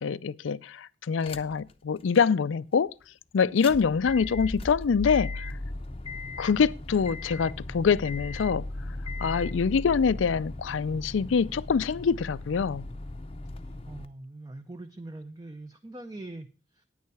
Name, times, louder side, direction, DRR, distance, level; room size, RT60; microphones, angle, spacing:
voice 1, 0.0-2.9 3.3-5.5 6.4-8.7 9.2-12.9, left 6 dB, 85° left, 0.4 m, -25 dB
sound 1, 1.2-1.7 2.1-2.2 3.4-14.1, left 2 dB, 30° left, 0.6 m, -37 dB
voice 2, 13.6-16.8, right 2 dB, 20° right, 0.6 m, -43 dB
9.5 x 9.4 x 4.7 m
head